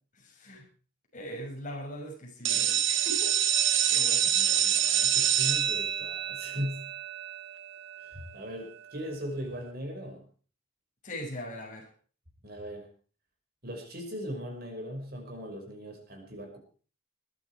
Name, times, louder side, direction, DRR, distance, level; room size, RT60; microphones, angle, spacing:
voice 1, 0.2-0.7 1.1-3.3 3.9-4.4 11.0-11.9, equal, 35° left, 0 dB, 6.2 m, -40 dB
sound 1, 2.4-8.1, right 10 dB, 65° right, 1.4 m, -27 dB
voice 2, 4.4-6.8 8.0-10.2 12.4-12.9 13.6-16.6, equal, 45° right, 3 dB, 5.6 m, -39 dB
21.5 x 12.0 x 4.8 m, 0.40 s
head